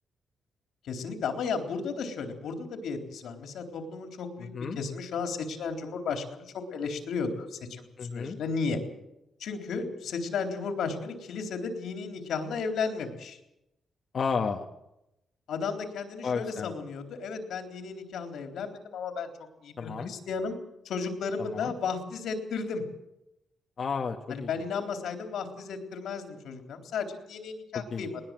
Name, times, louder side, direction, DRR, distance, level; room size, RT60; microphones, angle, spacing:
voice 1, 0.8-7.8 8.1-8.8 9.4-13.4 15.5-19.3 19.6-20.5 20.9-22.8 24.3-28.2, left 5 dB, 80° left, 5 dB, 3.8 m, -34 dB
voice 2, 4.4-4.8 8.0-8.4 14.1-14.6 16.2-16.7 19.8-20.1 21.4-21.7 23.8-24.5 27.9-28.1, left 5 dB, 50° left, 3 dB, 1.6 m, -32 dB
20.5 x 20.0 x 7.7 m, 0.86 s
cardioid pair, 125°, 0 cm